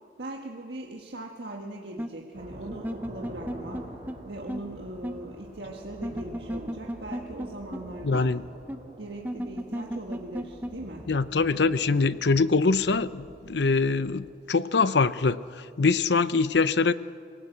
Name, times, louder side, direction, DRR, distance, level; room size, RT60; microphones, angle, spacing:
voice 1, 0.2-3.9 4.2-8.3 9.0-11.1, right 1 dB, 80° right, 0 dB, 1.6 m, -40 dB
sound 1, 2.0-2.1 2.7-3.8 4.1-4.2 4.5-4.6 5.0-5.1 6.0-7.5 7.7-7.8 8.1-8.2 8.7-8.8 9.2-10.7, equal, 10° right, 0.8 m, -33 dB
sound 2, 2.3-14.4, equal, 35° right, 3.5 m, -46 dB
voice 2, 8.0-8.4 11.1-15.4 15.8-16.9, left 4 dB, 85° left, 14 dB, 0.7 m, -23 dB
27.0 x 18.0 x 7.9 m, 2.2 s
head